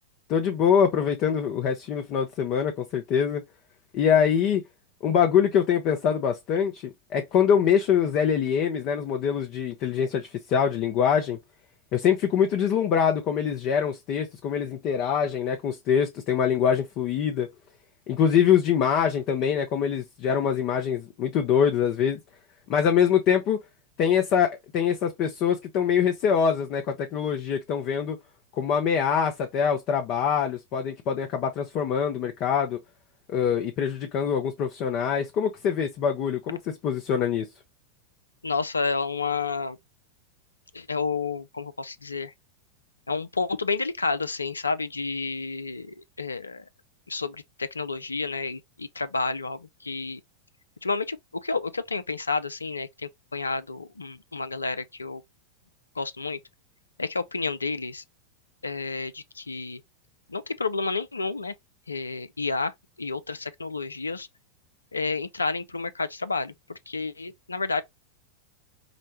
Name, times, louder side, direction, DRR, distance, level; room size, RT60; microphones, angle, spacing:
voice 1, 0.3-3.4 3.9-4.6 5.0-11.4 11.9-17.5 18.1-22.2 22.7-23.6 24.0-28.2 28.5-32.8 33.3-36.6 36.8-37.5, left 8 dB, 40° left, 0.6 m, -24 dB
voice 2, 38.4-39.8 40.7-42.3 43.1-46.6 47.1-50.2 50.8-51.2 51.4-55.2 56.0-56.4 57.0-58.0 58.6-59.8 60.3-61.5 61.9-62.7 63.0-64.3 64.9-67.8, left 4 dB, 80° left, 0.4 m, -30 dB
5.0 x 2.1 x 2.8 m
figure-of-eight pair, 90°, 0 cm